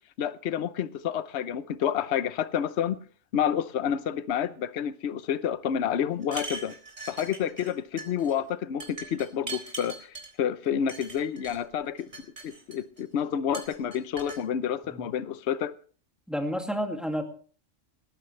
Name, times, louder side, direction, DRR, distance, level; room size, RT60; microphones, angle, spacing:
voice 1, 0.2-3.0 3.3-6.7 7.1-12.1 12.4-15.7, left 9 dB, 60° left, 1.0 m, -29 dB
sound 1, 6.2-7.7 8.0-8.3 8.8-10.3 10.9-11.6 12.0-13.0 13.5-14.4, right 3 dB, 55° right, 4.5 m, -40 dB
voice 2, 16.3-17.2, equal, ahead, 2.2 m, -30 dB
19.0 x 14.5 x 3.3 m
omnidirectional pair, 1.4 m